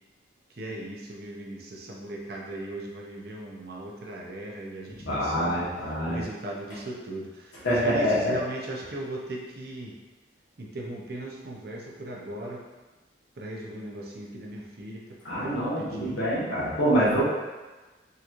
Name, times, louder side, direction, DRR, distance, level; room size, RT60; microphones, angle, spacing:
voice 1, 0.5-5.6 6.1-9.9 10.6-12.6 13.4-15.0 15.4-16.2, right 1 dB, 55° right, -2 dB, 0.6 m, -38 dB
voice 2, 5.0-6.2 7.6-8.3 15.2-17.2, equal, 80° left, -8 dB, 1.4 m, -25 dB
3.8 x 2.9 x 2.5 m, 1.2 s
head